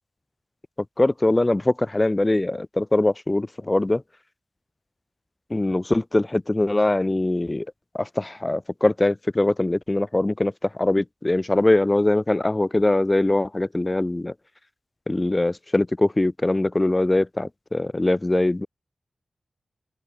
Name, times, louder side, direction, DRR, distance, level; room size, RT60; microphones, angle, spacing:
voice 1, 1.0-4.0 5.5-7.7 7.9-14.3 15.1-18.7, left 2 dB, 25° left, 1.0 m, -22 dB
cardioid pair, 55°, 0 cm